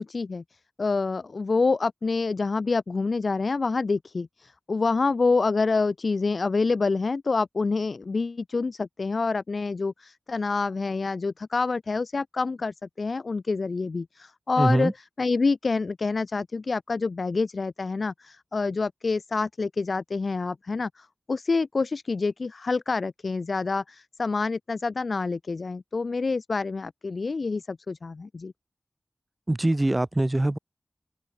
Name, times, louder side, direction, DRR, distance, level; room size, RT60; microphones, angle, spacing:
voice 1, 0.0-28.5, left 4 dB, 65° left, 4.1 m, -27 dB
voice 2, 14.6-14.9 29.5-30.6, right 1 dB, 25° right, 2.2 m, -23 dB
wide cardioid pair, 65°, 0 cm